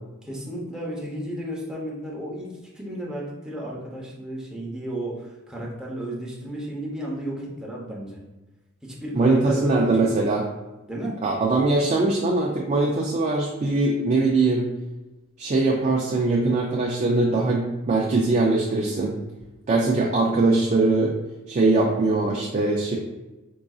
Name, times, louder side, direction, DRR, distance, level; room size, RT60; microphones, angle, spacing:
voice 1, 0.2-8.2 8.8-10.3 10.9-11.2, right 1 dB, 5° right, -4 dB, 0.7 m, -33 dB
voice 2, 9.2-10.5 11.2-14.7 15.4-19.2 19.7-21.1 21.5-23.0, right 3 dB, 30° right, -1 dB, 0.4 m, -21 dB
4.6 x 2.6 x 2.3 m, 1.1 s
head